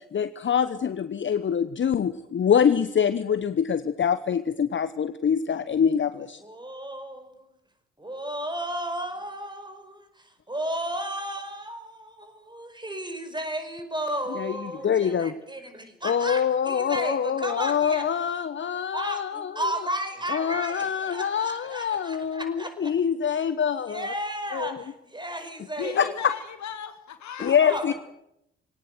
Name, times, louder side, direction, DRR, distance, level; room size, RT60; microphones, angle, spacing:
voice 1, 0.0-6.4 14.3-15.3 16.0-19.7 20.3-24.1 24.5-24.8 26.0-26.1 27.4-27.9, left 7 dB, 35° left, 13 dB, 1.0 m, -25 dB
voice 2, 6.4-7.4 8.0-18.1 18.9-22.9 23.3-23.4 23.9-26.2 27.4-27.9, right 1 dB, 10° right, 8 dB, 5.2 m, -34 dB
voice 3, 25.8-27.6, left 8 dB, 50° left, 10 dB, 1.9 m, -36 dB
22.5 x 18.0 x 7.9 m, 0.81 s
figure-of-eight pair, 45°, 36 cm